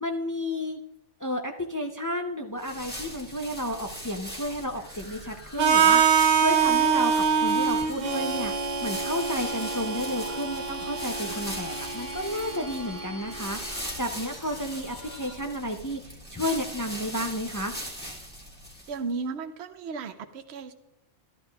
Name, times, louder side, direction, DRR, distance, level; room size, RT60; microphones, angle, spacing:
voice 1, 0.0-0.8 1.2-8.5 8.8-13.6 14.0-17.7, equal, 25° left, 3 dB, 0.4 m, -32 dB
sound 1, 2.6-19.1, equal, 10° left, 1.4 m, -40 dB
sound 2, 4.7-15.3, left 2 dB, 80° left, 4.7 m, -47 dB
Harmonica, 5.6-13.5, right 7 dB, 50° right, 0.5 m, -25 dB
voice 2, 18.9-20.7, right 4 dB, 70° right, 8 dB, 0.9 m, -34 dB
12.5 x 11.5 x 2.3 m, 0.90 s
omnidirectional pair, 1.2 m